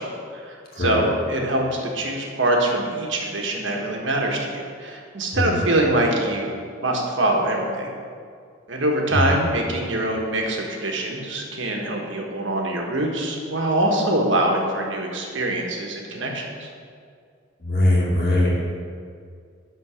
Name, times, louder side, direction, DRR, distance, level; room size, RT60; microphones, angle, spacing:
voice 1, 0.0-7.9 8.7-16.7, right 1 dB, 65° right, 0 dB, 1.4 m, -24 dB
voice 2, 17.6-18.7, left 1 dB, 50° left, -4 dB, 2.2 m, -21 dB
11.0 x 4.1 x 6.9 m, 2.2 s
head